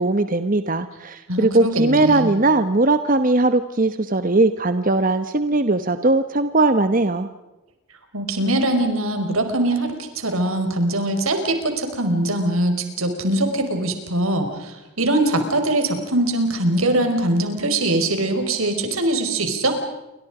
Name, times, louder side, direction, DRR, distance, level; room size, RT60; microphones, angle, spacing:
voice 1, 0.0-7.3, right 2 dB, 40° right, 10 dB, 1.1 m, -19 dB
voice 2, 1.3-2.3 8.1-19.8, right 1 dB, 85° right, 6 dB, 5.2 m, -22 dB
29.0 x 25.0 x 5.0 m, 1.0 s
head